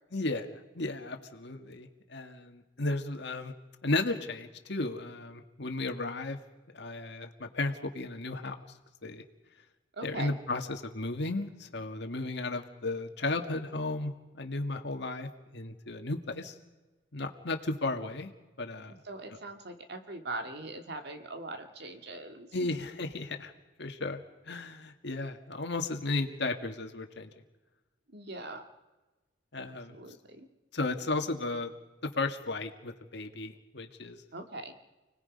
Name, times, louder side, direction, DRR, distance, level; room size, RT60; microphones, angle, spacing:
voice 1, 0.1-3.5 3.8-6.4 6.7-8.6 9.0-9.2 10.0-16.6 17.1-18.3 18.6-18.9 22.5-23.5 23.8-27.3 29.5-30.0 30.7-31.7 32.1-34.2, left 2 dB, 65° left, 5 dB, 1.9 m, -34 dB
voice 2, 9.9-10.4 18.9-22.8 28.1-28.6 29.9-30.5 34.3-34.7, right 2 dB, 60° right, 5 dB, 2.1 m, -41 dB
30.0 x 19.5 x 5.4 m, 1.1 s
head